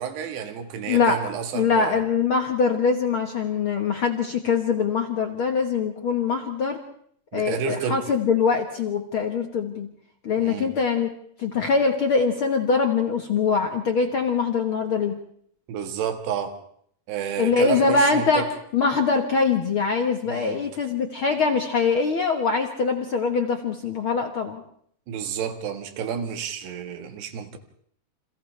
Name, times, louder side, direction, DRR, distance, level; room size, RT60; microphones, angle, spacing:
voice 1, 0.0-2.0 7.3-8.0 10.4-10.7 15.7-16.6 17.1-18.4 20.3-20.6 25.1-27.6, right 7 dB, 90° right, 7 dB, 3.8 m, -30 dB
voice 2, 0.9-1.2 1.5-6.8 7.3-9.9 10.2-11.1 11.4-15.1 17.4-18.4 18.7-24.6, left 5 dB, 70° left, 4 dB, 1.2 m, -23 dB
29.5 x 27.5 x 3.4 m, 0.65 s
omnidirectional pair, 4.6 m